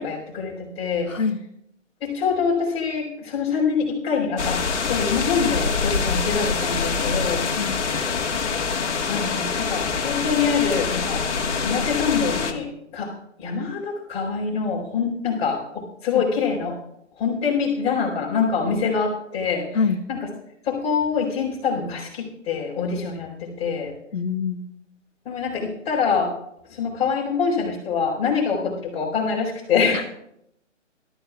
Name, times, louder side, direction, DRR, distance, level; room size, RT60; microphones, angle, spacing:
voice 1, 0.0-1.1 2.0-4.6 4.9-7.4 8.7-11.2 11.6-13.1 13.4-16.8 17.2-19.8 20.1-20.3 20.6-23.9 25.2-26.3 26.7-30.0, left 5 dB, 15° left, -4 dB, 4.1 m, -25 dB
voice 2, 1.1-1.4 7.5-7.9 16.1-16.2 19.7-20.0 24.1-24.7 29.9-30.0, left 5 dB, 90° left, 5 dB, 1.2 m, -25 dB
sound 1, 4.4-12.5, left 5 dB, 65° left, 1.6 m, -25 dB
22.0 x 13.5 x 2.4 m, 0.76 s
figure-of-eight pair, 145°, 38 cm